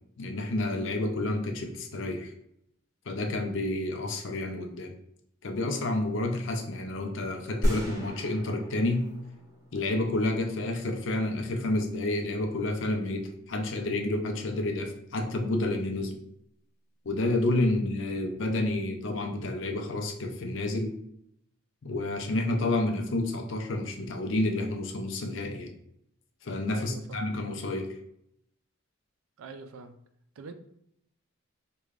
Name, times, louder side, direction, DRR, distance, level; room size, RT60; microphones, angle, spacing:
voice 1, 0.2-2.3 3.1-4.9 5.4-9.2 9.7-16.2 17.1-20.9 21.8-25.7 26.4-27.9, left 2 dB, 65° left, 4 dB, 0.5 m, -30 dB
sound 1, 7.6-10.5, equal, 15° right, 1.4 m, -33 dB
voice 2, 26.7-27.3 29.4-30.0 30.4-30.5, right 4 dB, 80° right, 9 dB, 0.4 m, -44 dB
4.7 x 2.3 x 2.4 m, 0.74 s
head